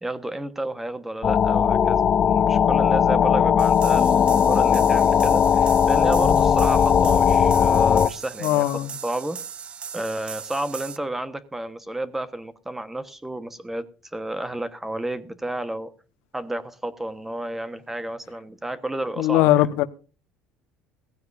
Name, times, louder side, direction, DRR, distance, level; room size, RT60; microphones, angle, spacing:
voice 1, 0.0-9.4 9.9-13.8 14.1-15.9 16.3-19.7, right 1 dB, 10° right, 1.2 m, -31 dB
sound 1, 1.2-8.1, left 8 dB, 35° left, 0.7 m, -18 dB
sound 2, 3.6-11.0, right 7 dB, 35° right, 0.9 m, -38 dB
voice 2, 8.4-8.9 19.2-19.9, left 14 dB, 80° left, 1.1 m, -20 dB
17.5 x 15.5 x 2.6 m
supercardioid pair, 110°, 3 cm